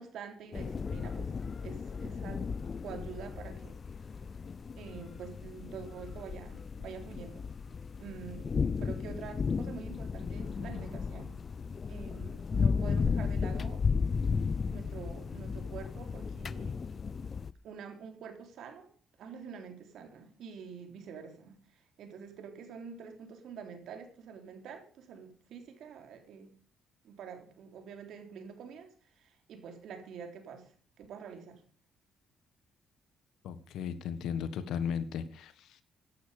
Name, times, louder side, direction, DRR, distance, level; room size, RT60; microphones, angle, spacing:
voice 1, 0.0-1.3 1.6-2.5 2.8-3.8 4.8-7.4 8.0-11.3 11.9-13.8 14.7-16.8 17.6-18.9 19.2-26.5 27.0-28.9 29.2-30.7 31.0-31.6, right 6 dB, 75° right, 6 dB, 3.6 m, -46 dB
sound 1, 0.5-17.5, left 5 dB, 40° left, 0.6 m, -34 dB
voice 2, 33.4-35.8, left 7 dB, 85° left, 13 dB, 1.6 m, -36 dB
16.0 x 11.5 x 5.2 m, 0.41 s
cardioid pair, 90°, 0 cm